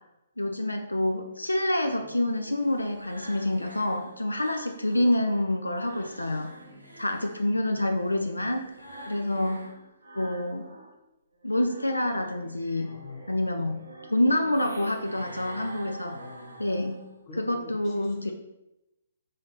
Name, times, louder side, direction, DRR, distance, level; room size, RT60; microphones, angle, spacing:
voice 1, 0.4-6.5 7.0-8.6 9.1-9.7 10.2-10.7 11.4-12.9 13.3-13.7 14.1-16.2 16.6-17.0 17.4-18.3, left 1 dB, 90° left, 5 dB, 0.4 m, -27 dB
sound 1, 1.8-5.2 5.6-11.0 11.3-17.2, right 1 dB, 90° right, 0.8 m, -47 dB
voice 2, 12.8-13.3 13.6-13.8 15.2-15.7 16.1-16.7 17.3-18.3, left 3 dB, 35° left, 2 dB, 0.8 m, -47 dB
5.0 x 2.6 x 3.8 m, 0.92 s
figure-of-eight pair, 130°, 0 cm